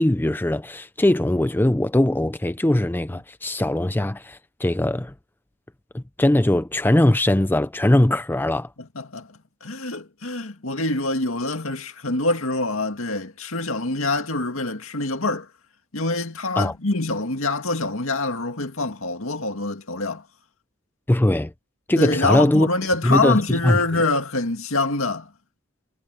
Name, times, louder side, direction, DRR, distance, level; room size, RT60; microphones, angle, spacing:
voice 1, 0.0-5.1 5.9-8.7 16.6-16.7 21.1-21.5 21.9-22.7 23.0-23.8, left 1 dB, 10° left, 0.5 m, -20 dB
voice 2, 9.0-9.3 9.6-15.5 15.9-20.2 22.0-25.3, left 2 dB, 70° left, 2.2 m, -25 dB
head